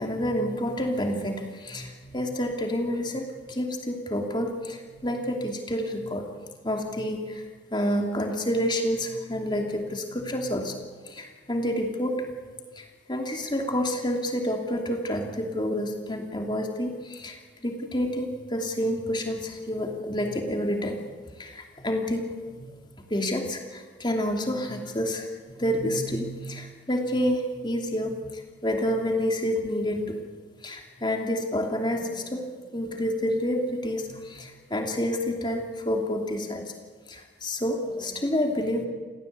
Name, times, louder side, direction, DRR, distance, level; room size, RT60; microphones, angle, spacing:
voice 1, 0.0-6.2 6.6-7.4 7.7-10.7 11.0-12.3 12.8-21.0 21.4-22.7 23.1-30.1 30.6-32.5 32.7-36.7 37.1-38.9, equal, 25° left, 2 dB, 2.8 m, -29 dB
29.5 x 16.5 x 8.5 m, 1.5 s
head